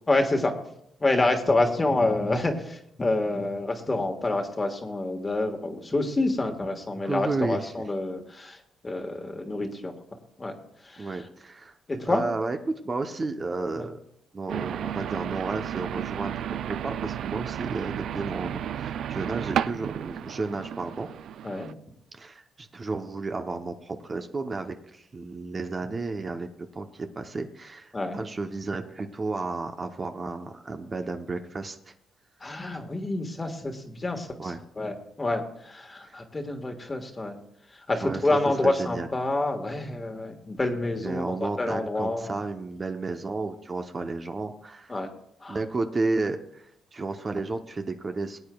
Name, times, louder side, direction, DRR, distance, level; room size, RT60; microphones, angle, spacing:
voice 1, 0.1-0.5 1.0-8.6 8.8-9.9 10.4-10.6 10.8-11.2 11.9-12.3 13.7-13.8 21.4-21.7 27.9-28.2 32.4-34.5 34.8-37.4 37.9-42.4 44.9-45.1 45.4-45.6, left 2 dB, 25° left, 4 dB, 1.5 m, -27 dB
voice 2, 7.0-7.6 11.0-11.7 12.1-14.0 14.3-21.1 22.1-26.5 26.7-31.9 34.4-34.6 36.1-36.2 38.0-38.4 38.6-39.1 41.0-44.9 45.5-48.4, right 3 dB, 30° right, 6 dB, 0.8 m, -32 dB
sound 1, 14.5-21.7, right 10 dB, 70° right, 0.3 m, -33 dB
20.0 x 8.6 x 2.3 m, 0.74 s
cardioid pair, 90°, 0 cm